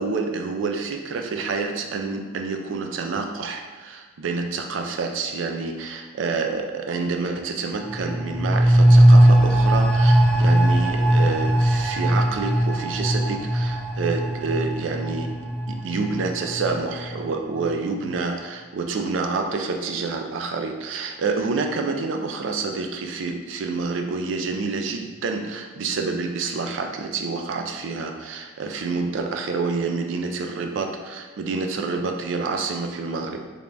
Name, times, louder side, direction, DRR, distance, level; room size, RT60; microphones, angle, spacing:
voice 1, 0.0-15.3 15.7-33.4, right 4 dB, 85° right, 4 dB, 0.4 m, -28 dB
sound 1, 7.8-17.2 17.5-17.6, right 1 dB, 5° right, 0.3 m, -19 dB
3.4 x 3.3 x 2.5 m, 1.3 s
head